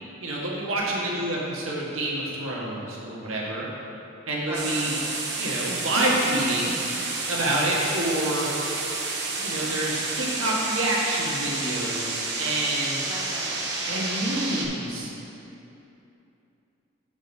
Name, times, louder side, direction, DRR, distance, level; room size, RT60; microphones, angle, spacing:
voice 1, 0.2-3.7 4.3-5.0 5.4-6.8 7.3-8.5 9.4-13.1 13.9-15.1, right 1 dB, 85° right, -4 dB, 1.5 m, -27 dB
voice 2, 0.8-1.3 4.5-4.9 9.4-9.7 13.0-14.3, right 1 dB, 10° right, -4 dB, 0.8 m, -40 dB
sound 1, 4.5-14.7, right 3 dB, 55° right, 1.0 m, -30 dB
7.1 x 5.2 x 5.2 m, 2.9 s
head